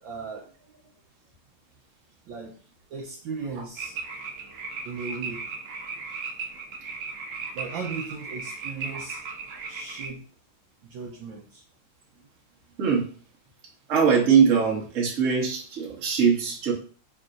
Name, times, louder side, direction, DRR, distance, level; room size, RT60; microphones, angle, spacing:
voice 1, 0.0-0.9 2.2-2.5 2.9-3.9 4.8-5.4 7.5-9.2 9.7-10.2 10.8-11.6, right 5 dB, 75° right, 0 dB, 1.2 m, -37 dB
sound 1, 3.8-10.1, right 4 dB, 90° right, 0.7 m, -36 dB
voice 2, 13.9-16.7, right 6 dB, 45° right, -2 dB, 1.1 m, -21 dB
5.6 x 2.6 x 2.5 m, 0.41 s
omnidirectional pair, 2.3 m